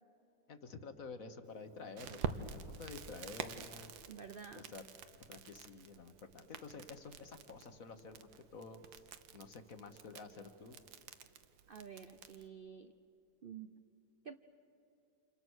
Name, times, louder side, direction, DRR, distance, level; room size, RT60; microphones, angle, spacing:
voice 1, 0.5-3.9 4.5-4.9 5.3-10.8, left 4 dB, 50° left, 8 dB, 1.6 m, -50 dB
Crackle, 2.0-12.5, right 7 dB, 90° right, 1.7 m, -48 dB
voice 2, 4.1-4.7 11.7-12.9 13.4-13.7 14.2-14.4, right 7 dB, 60° right, 8 dB, 0.5 m, -50 dB
30.0 x 28.0 x 6.3 m, 2.8 s
omnidirectional pair, 2.0 m